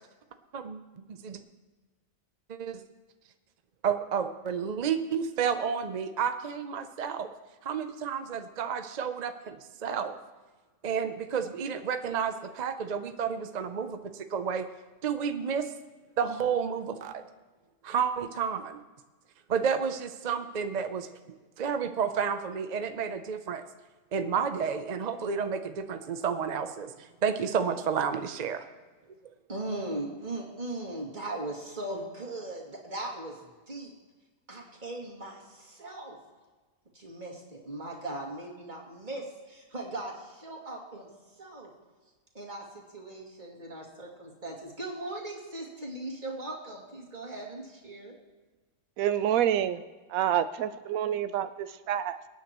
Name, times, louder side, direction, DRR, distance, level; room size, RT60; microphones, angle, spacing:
voice 1, 0.5-1.4 2.5-2.8 3.8-7.3 7.6-9.6 9.8-10.1 10.8-14.6 15.0-15.7 16.2-17.2 17.8-18.8 19.5-23.6 24.1-28.6, right 7 dB, 50° right, 8 dB, 0.5 m, -31 dB
voice 2, 29.5-33.4 33.7-33.9 34.5-36.2 36.9-41.1 41.4-41.7 42.3-48.2, right 2 dB, 35° right, -2 dB, 2.6 m, -39 dB
voice 3, 49.0-49.8 50.1-52.3, right 10 dB, 90° right, 11 dB, 1.0 m, -28 dB
24.0 x 9.4 x 3.0 m, 1.3 s
omnidirectional pair, 1.4 m